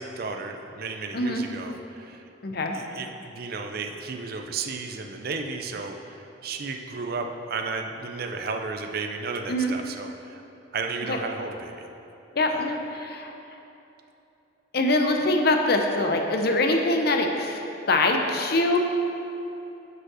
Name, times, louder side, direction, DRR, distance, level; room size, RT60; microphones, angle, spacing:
voice 1, 0.0-2.2 2.7-10.4 10.7-11.9 12.5-12.6, right 4 dB, 50° right, 4 dB, 0.5 m, -33 dB
voice 2, 1.1-1.4 2.4-2.8 9.5-9.8 11.1-11.2 12.4-13.3 14.7-17.6 17.9-18.8, left 2 dB, 55° left, 3 dB, 0.7 m, -23 dB
6.2 x 5.3 x 6.1 m, 2.9 s
head